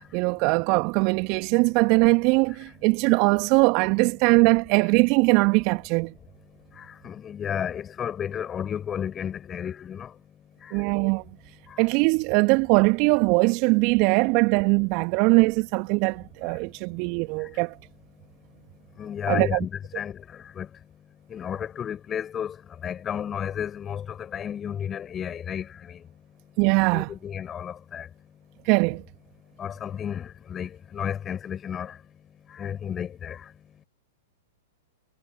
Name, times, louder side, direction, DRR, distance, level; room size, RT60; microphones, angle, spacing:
voice 1, 0.1-6.1 10.7-11.2 11.8-17.8 19.3-19.6 26.6-27.1 28.6-29.0, right 30 dB, 40° right, 1.7 m, -21 dB
voice 2, 6.8-10.1 10.6-10.8 11.7-11.8 19.0-20.7 21.3-22.6 22.8-26.0 26.9-28.1 29.6-32.0 32.5-33.4, left 8 dB, 20° left, 4.8 m, -32 dB
figure-of-eight pair, 105°, 0 cm